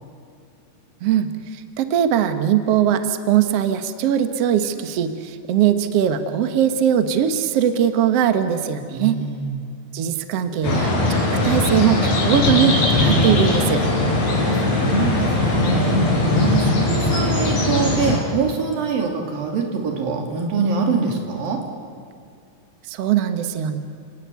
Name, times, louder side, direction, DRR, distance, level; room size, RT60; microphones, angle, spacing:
voice 1, 1.8-9.2 9.9-13.8 22.9-23.8, right 9 dB, 80° right, 9 dB, 1.3 m, -20 dB
voice 2, 8.9-9.6 14.3-16.0 16.4-21.6, right 5 dB, 60° right, 2 dB, 4.6 m, -24 dB
sound 1, 10.6-18.2, left 2 dB, 40° left, 5.9 m, -20 dB
sound 2, 12.2-13.6, left 1 dB, 85° left, 6.5 m, -22 dB
30.0 x 17.5 x 9.5 m, 2.4 s
omnidirectional pair, 4.9 m